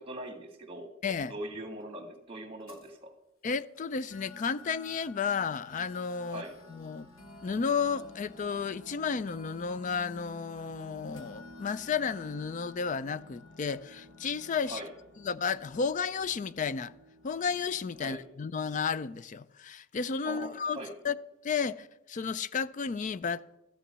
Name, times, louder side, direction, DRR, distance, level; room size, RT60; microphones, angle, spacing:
voice 1, 0.0-0.9 1.3-3.1 6.3-6.6 14.6-14.9 18.0-18.2 20.2-20.9, right 1 dB, 25° right, 1.8 m, -41 dB
voice 2, 1.0-1.3 3.4-6.4 6.7-7.1 7.4-14.8 15.2-16.9 17.2-20.8 21.0-21.2 21.4-23.6, left 6 dB, 35° left, 0.4 m, -32 dB
sound 1, 1.8-1.9 2.6-2.9 3.8-3.9 4.1-18.2, left 2 dB, 75° left, 1.6 m, -52 dB
13.5 x 6.8 x 7.4 m
head